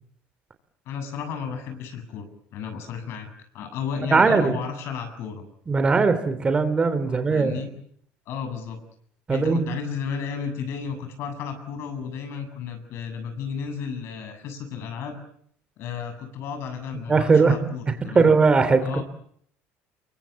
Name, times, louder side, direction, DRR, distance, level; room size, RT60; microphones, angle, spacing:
voice 1, 0.9-3.3 3.5-5.4 7.0-7.7 8.3-8.8 9.3-15.2 15.8-18.3 18.8-19.0, left 6 dB, 60° left, 8 dB, 7.8 m, -33 dB
voice 2, 4.1-4.5 5.7-7.5 9.3-9.6 17.1-17.5 18.1-18.8, right 4 dB, 20° right, 10 dB, 3.1 m, -19 dB
28.5 x 23.5 x 8.4 m, 0.66 s
cardioid pair, 140°, 5 cm